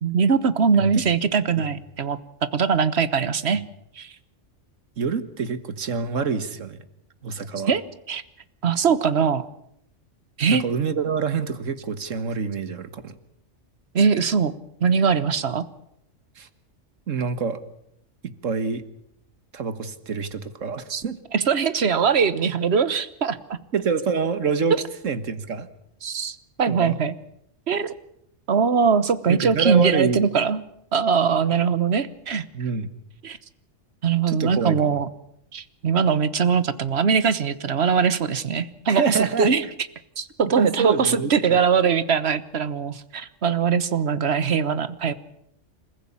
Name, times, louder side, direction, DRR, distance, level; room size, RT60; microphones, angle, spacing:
voice 1, 0.0-3.6 4.0-4.1 7.7-7.8 8.1-8.2 8.6-9.5 10.4-10.6 13.9-14.5 14.8-15.6 20.9-21.0 21.3-23.4 26.0-27.1 27.7-27.9 28.5-30.6 30.9-32.4 33.2-33.4 34.0-35.1 35.5-39.7 40.2-45.1, right 6 dB, 55° right, 15 dB, 1.4 m, -21 dB
voice 2, 5.0-6.8 7.2-7.7 10.5-13.2 16.3-16.5 17.1-17.6 18.2-18.8 19.5-21.2 23.7-24.8 25.0-25.7 26.7-27.0 29.3-30.3 32.5-32.9 34.3-35.0 38.9-39.5 40.6-41.3, right 5 dB, 85° right, 12 dB, 1.8 m, -26 dB
27.5 x 15.0 x 8.7 m, 0.76 s
omnidirectional pair, 1.3 m